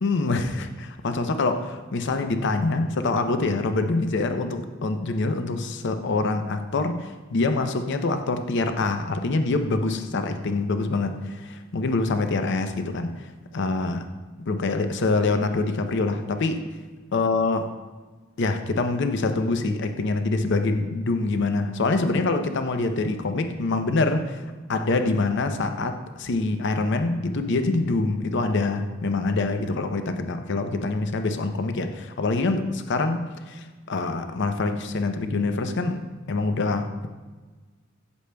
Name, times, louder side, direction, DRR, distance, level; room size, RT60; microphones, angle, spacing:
voice 1, 0.0-13.3 13.5-14.0 14.4-16.6 17.1-17.7 18.4-24.4 24.7-36.0 36.3-37.1, left 3 dB, 60° left, 7 dB, 0.6 m, -25 dB
8.1 x 8.1 x 2.2 m, 1.3 s
head